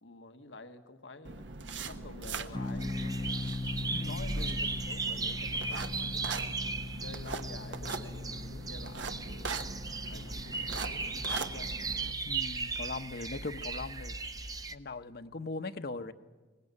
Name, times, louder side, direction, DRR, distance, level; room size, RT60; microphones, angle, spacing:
voice 1, 0.0-1.5 1.8-3.5 4.1-6.5 7.0-9.7 10.1-11.8, left 3 dB, 85° left, 7 dB, 1.5 m, -49 dB
sound 1, 1.2-12.1, right 3 dB, 80° right, 1.2 m, -41 dB
sound 2, 2.5-13.1, left 2 dB, 25° left, 0.7 m, -41 dB
sound 3, 2.8-14.7, right 4 dB, 20° right, 0.8 m, -37 dB
voice 2, 12.3-14.2 14.7-16.1, left 3 dB, 60° left, 8 dB, 1.0 m, -39 dB
23.0 x 19.5 x 9.8 m, 1.3 s
head